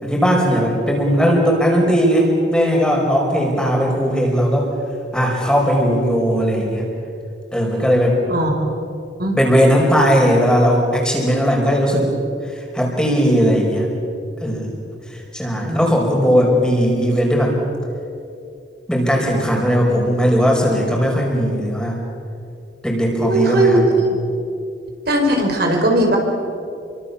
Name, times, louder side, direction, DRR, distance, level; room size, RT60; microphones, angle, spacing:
voice 1, 0.0-4.7 5.1-6.8 7.5-8.2 9.3-12.1 12.6-13.9 14.4-14.8 15.1-17.6 18.9-22.0 22.8-23.8, equal, 5° left, -1 dB, 5.3 m, -17 dB
voice 2, 23.2-23.8 25.1-26.2, right 1 dB, 60° right, 1 dB, 4.8 m, -18 dB
30.0 x 24.5 x 7.1 m, 2.6 s
head